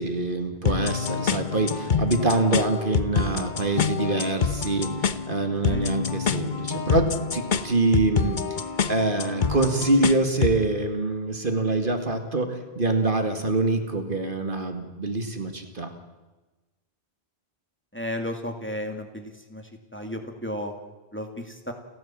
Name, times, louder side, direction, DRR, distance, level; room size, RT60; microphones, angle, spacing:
voice 1, 0.0-8.4 8.9-15.9, right 2 dB, 55° right, 6 dB, 2.2 m, -25 dB
sound 1, 0.7-10.6, left 6 dB, 50° left, 1.0 m, -27 dB
voice 2, 17.9-20.7 21.1-21.7, left 1 dB, 10° left, 4 dB, 2.2 m, -34 dB
30.0 x 14.0 x 7.5 m, 1.2 s
omnidirectional pair, 1.1 m